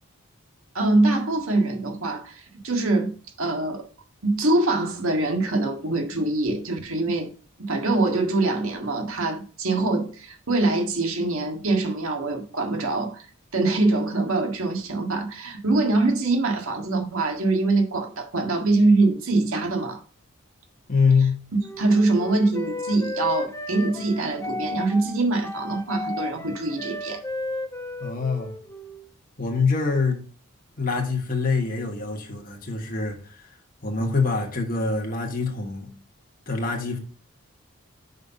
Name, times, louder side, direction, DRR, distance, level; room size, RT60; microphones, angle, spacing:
voice 1, 0.7-3.8 4.2-7.3 7.6-13.2 13.5-20.0 21.8-27.2, right 2 dB, 75° right, 1.8 m, -24 dB
voice 2, 20.9-21.4 28.0-28.5 29.4-30.2 30.8-33.5 33.8-35.9 36.5-37.0, left 4 dB, 40° left, 1.3 m, -24 dB
Wind instrument woodwind instrument, 21.6-29.0, left 2 dB, 15° left, 0.8 m, -34 dB
5.8 x 5.4 x 5.4 m
head